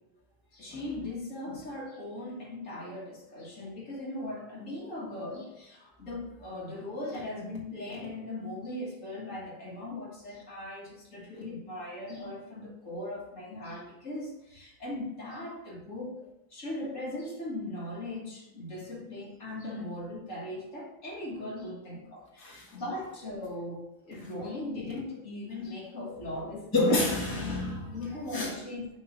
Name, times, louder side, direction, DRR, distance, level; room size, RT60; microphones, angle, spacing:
voice 1, 0.5-16.2 16.5-26.9 27.9-28.9, left 1 dB, 70° left, 2.2 m, -39 dB
voice 2, 22.4-22.8 26.0-26.1 26.7-28.0 28.3-28.6, left 2 dB, 15° left, 1.5 m, -28 dB
6.3 x 3.7 x 5.7 m
omnidirectional pair, 1.4 m